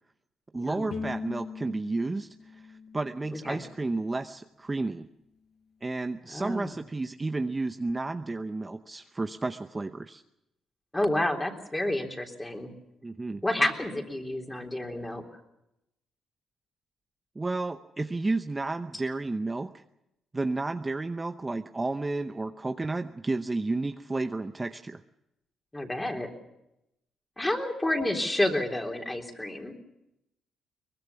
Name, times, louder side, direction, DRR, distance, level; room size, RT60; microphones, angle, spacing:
voice 1, 0.5-2.7 2.9-5.1 5.8-10.2 13.0-13.4 17.4-19.8 20.3-25.0, right 2 dB, 20° right, 7 dB, 0.8 m, -32 dB
Bowed string instrument, 0.9-4.1, left 5 dB, 60° left, 6.3 m, -41 dB
voice 2, 6.3-6.7 10.9-12.7 13.4-15.2 25.7-26.3 27.4-29.7, left 1 dB, 15° left, 3 dB, 3.6 m, -29 dB
23.0 x 20.5 x 7.1 m, 0.86 s
cardioid pair, 90°, 0 cm